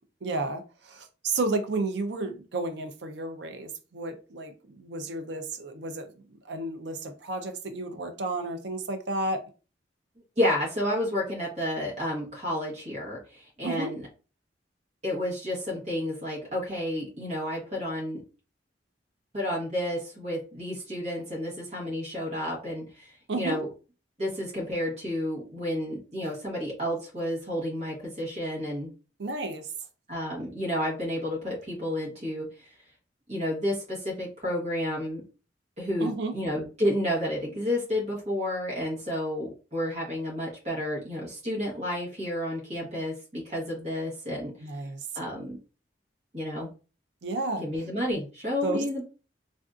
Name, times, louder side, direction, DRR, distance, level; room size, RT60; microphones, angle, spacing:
voice 1, 0.2-6.1 6.4-9.5 13.6-13.9 23.3-23.6 29.2-29.7 36.0-36.3 44.6-45.1 47.2-47.6 48.6-48.8, right 2 dB, 75° right, 0.5 m, -32 dB
voice 2, 10.4-14.0 15.0-18.2 19.3-23.7 24.2-28.9 30.1-32.7 33.3-35.2 35.8-44.5 45.1-45.6 46.3-46.7 47.6-49.0, left 1 dB, 40° right, 1.2 m, -31 dB
3.4 x 2.5 x 2.4 m
head